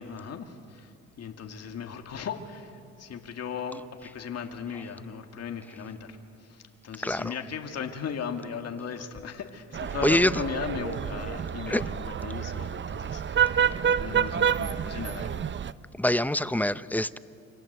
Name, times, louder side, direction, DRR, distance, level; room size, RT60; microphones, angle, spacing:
voice 1, 0.0-15.5, left 6 dB, 55° left, 2.2 m, -37 dB
sound 1, 9.7-15.7, right 8 dB, 40° right, 0.7 m, -28 dB
voice 2, 16.0-17.2, left 1 dB, 5° left, 0.7 m, -24 dB
28.5 x 25.5 x 8.1 m
cardioid pair, 90°, 30 cm